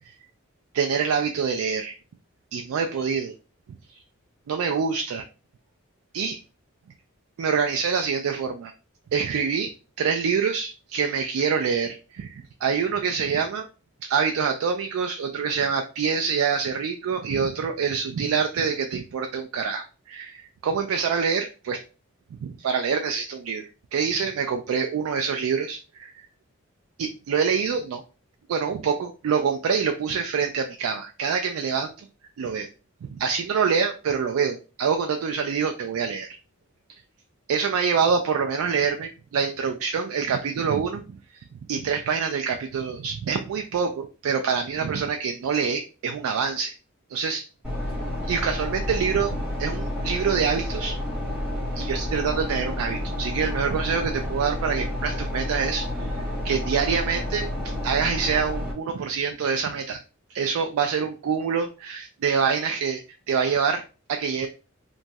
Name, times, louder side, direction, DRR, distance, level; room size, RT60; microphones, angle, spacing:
voice 1, 0.7-1.9 2.5-3.3 4.5-5.3 6.1-6.4 7.4-8.7 9.1-13.7 14.0-21.8 22.3-26.1 27.0-28.0 28.5-32.1 32.4-32.7 33.0-36.4 37.5-46.7 47.1-47.5 48.2-51.0 51.8-56.1 56.4-60.0 60.3-63.0 63.3-63.8 64.1-64.5, right 6 dB, 80° right, 5 dB, 0.3 m, -26 dB
sound 1, 47.6-58.7, left 1 dB, 5° right, 1.1 m, -30 dB
2.9 x 2.6 x 2.2 m, 0.34 s
head